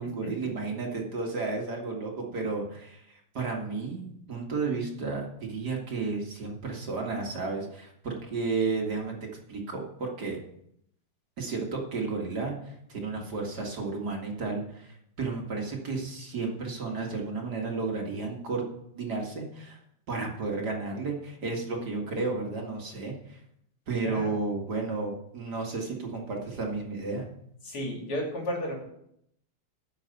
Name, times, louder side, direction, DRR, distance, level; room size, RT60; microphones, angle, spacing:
voice 1, 0.0-9.1 9.5-10.4 11.4-18.6 19.0-19.8 20.1-23.4 23.9-27.3, right 4 dB, 50° right, 0 dB, 2.5 m, -32 dB
voice 2, 24.0-24.4 27.6-28.7, equal, 80° left, 0 dB, 3.8 m, -33 dB
11.0 x 6.6 x 7.9 m, 0.74 s
omnidirectional pair, 2.4 m